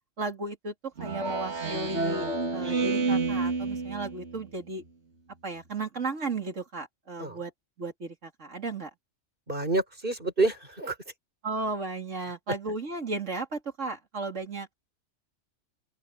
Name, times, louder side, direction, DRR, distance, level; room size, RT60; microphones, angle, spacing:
voice 1, 0.2-2.3 2.5-4.8 5.4-7.5 7.8-8.9 11.4-14.7, right 3 dB, 80° right, 3.4 m, -34 dB
Speech synthesizer, 1.0-4.5, right 3 dB, 65° right, 2.5 m, -29 dB
voice 2, 9.5-11.0, right 2 dB, 45° right, 5.8 m, -28 dB
open air
omnidirectional pair, 1.3 m